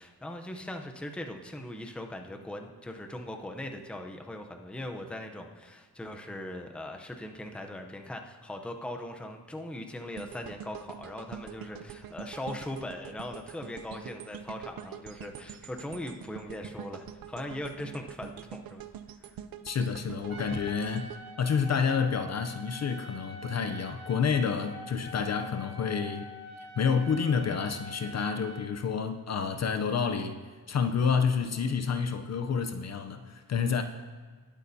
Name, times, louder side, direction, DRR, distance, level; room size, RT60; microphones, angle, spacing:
voice 1, 0.0-18.8 19.2-19.4 20.5-20.6, left 1 dB, 5° left, 0.6 m, -40 dB
sound 1, 10.2-22.3 22.8-22.9, right 9 dB, 65° right, 0.6 m, -45 dB
voice 2, 19.6-26.3 26.8-30.4 30.7-33.8, left 6 dB, 45° left, 0.6 m, -29 dB
Trumpet, 20.3-28.7, equal, 85° right, 1.5 m, -45 dB
20.0 x 8.4 x 2.7 m
wide cardioid pair, 165°, 37 cm